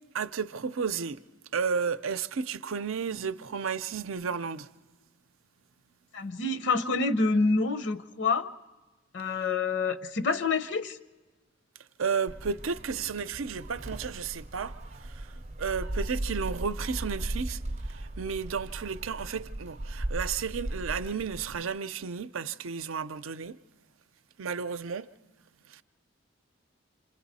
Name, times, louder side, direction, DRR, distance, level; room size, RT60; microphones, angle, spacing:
voice 1, 0.1-1.2 1.5-4.7 12.0-14.8 15.0-15.2 15.6-17.6 17.9-23.6 24.4-25.1 25.7-25.8, right 6 dB, 80° right, 0.6 m, -32 dB
voice 2, 6.1-8.5 9.1-11.0, left 3 dB, 60° left, 0.7 m, -27 dB
Gull seagull, 12.3-21.6, right 1 dB, 35° right, 0.6 m, -37 dB
27.5 x 27.5 x 4.2 m
head